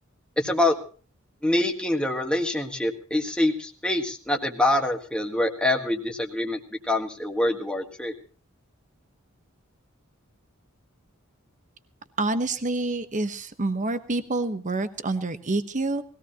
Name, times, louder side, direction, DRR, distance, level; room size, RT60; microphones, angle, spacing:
voice 1, 0.4-0.7 1.4-6.6 6.9-8.1, left 1 dB, 5° left, 2 dB, 1.6 m, -25 dB
voice 2, 12.2-16.0, right 2 dB, 35° right, 10 dB, 1.1 m, -27 dB
20.5 x 17.0 x 2.9 m, 0.39 s
head